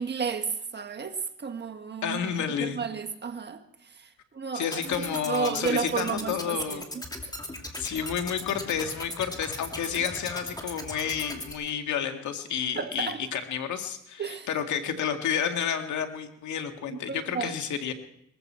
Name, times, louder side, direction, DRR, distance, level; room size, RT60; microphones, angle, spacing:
voice 1, 0.0-2.3 2.6-3.6 3.9-6.8 12.7-13.3 14.2-14.5 16.9-17.6, right 6 dB, 35° right, 7 dB, 1.6 m, -32 dB
voice 2, 2.0-2.9 4.5-6.8 7.8-17.9, left 8 dB, 70° left, 6 dB, 1.9 m, -30 dB
sound 1, 4.6-11.5, left 1 dB, 15° left, 2.6 m, -38 dB
21.0 x 15.0 x 4.4 m, 0.77 s
cardioid pair, 90°, 30 cm